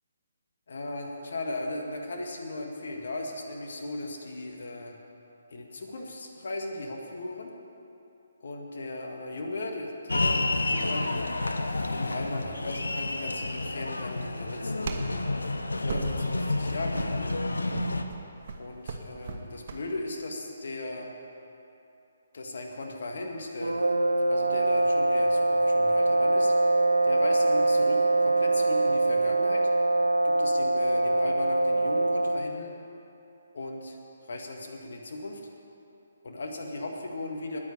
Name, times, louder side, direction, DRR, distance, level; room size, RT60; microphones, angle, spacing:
voice 1, 0.7-4.9 5.5-7.5 8.4-11.1 11.9-15.2 15.8-17.3 18.6-21.1 22.3-24.0 24.3-26.5 27.0-29.7 30.2-32.7 33.5-34.0 34.3-35.4 36.2-37.6, left 2 dB, 60° left, 1 dB, 1.8 m, -37 dB
sound 1, 10.1-18.0, left 2 dB, 80° left, 0.9 m, -30 dB
sound 2, 11.7-20.0, right 4 dB, 45° right, 1.3 m, -41 dB
sound 3, 23.6-32.6, right 2 dB, 80° right, 0.6 m, -23 dB
9.6 x 9.5 x 9.7 m, 2.9 s
figure-of-eight pair, 140°, 0 cm